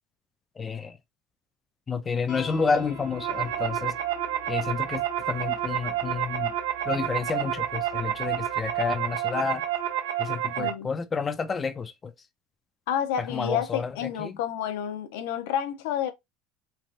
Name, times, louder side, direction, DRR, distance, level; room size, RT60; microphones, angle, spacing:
voice 1, 0.6-1.0 1.9-4.0 4.5-6.5 6.9-9.6 10.2-12.1 13.3-13.9 14.2-14.4, left 5 dB, 25° left, 0.3 m, -30 dB
sound 1, 2.3-8.9, left 3 dB, 45° left, 0.8 m, -46 dB
sound 2, 2.9-10.7, right 11 dB, 75° right, 0.8 m, -29 dB
voice 2, 10.6-10.9 12.9-16.1, left 9 dB, 80° left, 0.5 m, -30 dB
3.3 x 2.5 x 2.4 m
supercardioid pair, 110°, 0 cm